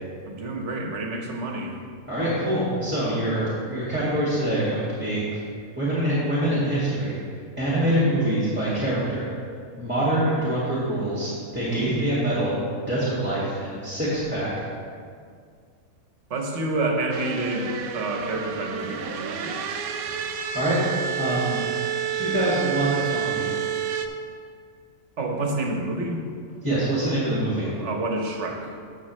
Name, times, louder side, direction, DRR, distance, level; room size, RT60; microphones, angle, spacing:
voice 1, 0.2-1.8 16.3-19.6 25.2-26.2 27.6-28.7, right 2 dB, 55° right, 1 dB, 1.4 m, -28 dB
voice 2, 2.1-5.2 5.8-7.1 7.6-9.3 9.8-12.5 12.9-14.6 20.1-20.2 20.5-20.8 21.2-21.6 22.1-23.5 26.6-27.7, right 1 dB, 10° right, -9 dB, 1.9 m, -25 dB
sound 1, 17.1-24.1, right 8 dB, 85° right, 1.1 m, -29 dB
14.0 x 6.3 x 3.2 m, 2.2 s
omnidirectional pair, 1.5 m